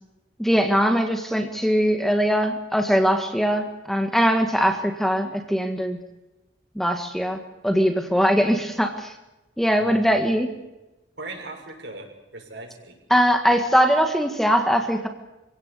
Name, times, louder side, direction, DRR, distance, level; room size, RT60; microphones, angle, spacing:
voice 1, 0.4-6.0 6.8-9.1 9.6-10.5 13.1-15.1, equal, ahead, 5 dB, 1.8 m, -21 dB
voice 2, 9.8-10.4 11.2-13.0, right 2 dB, 70° right, 2 dB, 6.6 m, -38 dB
26.5 x 17.0 x 8.4 m, 1.0 s
head